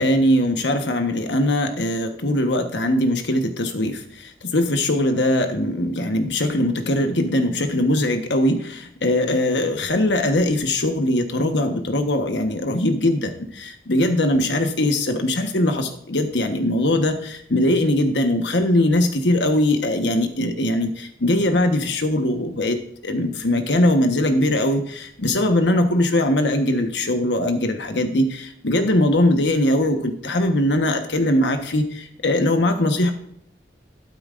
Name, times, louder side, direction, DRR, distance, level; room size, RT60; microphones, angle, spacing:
voice 1, 0.0-22.8 23.0-33.1, left 1 dB, 85° left, 6 dB, 1.2 m, -21 dB
12.0 x 9.4 x 2.6 m, 0.67 s
head